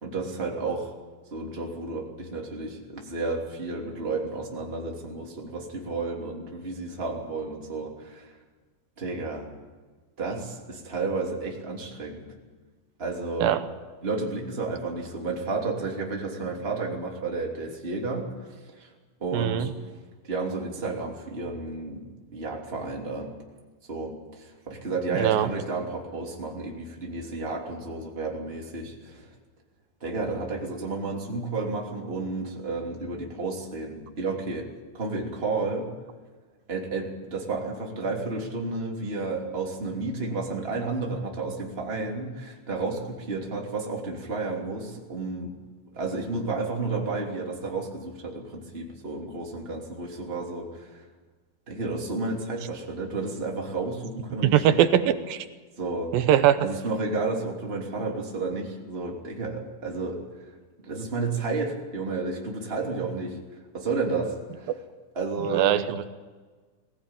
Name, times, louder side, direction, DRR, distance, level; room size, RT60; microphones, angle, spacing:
voice 1, 0.0-0.9 1.3-8.4 9.0-9.5 10.2-12.2 13.0-13.5 14.0-18.9 19.2-19.7 20.2-22.0 22.3-23.3 23.9-29.3 30.0-34.7 34.9-35.9 36.7-45.5 45.9-51.0 51.7-55.1 55.8-56.1 56.6-60.5 60.8-63.4 63.7-64.7 65.1-65.7, right 3 dB, 15° right, -1 dB, 2.8 m, -32 dB
voice 2, 19.3-19.7 25.1-25.5 54.4-55.4 56.1-56.6 65.5-66.1, right 11 dB, 75° right, 11 dB, 2.6 m, -21 dB
21.0 x 16.0 x 9.0 m, 1.4 s
omnidirectional pair, 4.3 m